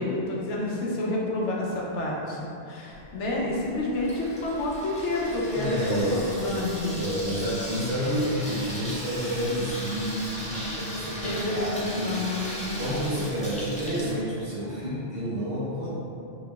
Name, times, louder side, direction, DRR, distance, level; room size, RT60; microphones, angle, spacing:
voice 1, 0.0-7.0 11.2-12.6, left 2 dB, 85° left, -3 dB, 1.0 m, -29 dB
Water tap faucet / Sink (filling or washing), 2.9-14.2, equal, 10° left, 0.4 m, -37 dB
voice 2, 5.5-12.1 12.6-15.9, equal, 55° right, -10 dB, 1.3 m, -29 dB
4.1 x 3.0 x 2.3 m, 2.7 s
omnidirectional pair, 1.2 m